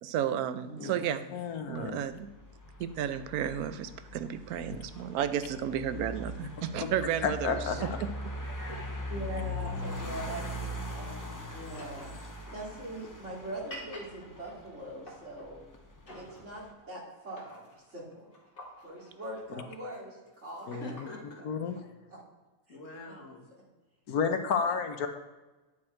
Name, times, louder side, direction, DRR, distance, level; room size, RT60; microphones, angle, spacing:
voice 1, 0.0-1.2 1.7-2.3 2.8-7.6, right 9 dB, 90° right, 12 dB, 1.1 m, -32 dB
voice 2, 0.6-1.2 7.4-7.9 9.1-15.6 16.1-18.3 18.8-21.0 22.1-22.2 22.7-22.8 23.0-23.1, right 1 dB, 50° right, -4 dB, 2.9 m, -42 dB
voice 3, 1.3-2.0 7.2-7.8 20.7-20.9 21.4-21.8 24.1-25.1, left 6 dB, 85° left, 7 dB, 1.4 m, -31 dB
sound 1, 2.0-16.7, left 1 dB, 20° left, 0.5 m, -41 dB
voice 4, 8.4-9.1 20.8-21.4 22.7-23.5, left 2 dB, 60° left, 1 dB, 1.6 m, -45 dB
sound 2, 11.1-15.5 16.1-16.9 17.2-21.2, equal, 40° left, 2.0 m, -50 dB
9.5 x 6.4 x 4.4 m, 1.2 s
omnidirectional pair, 1.6 m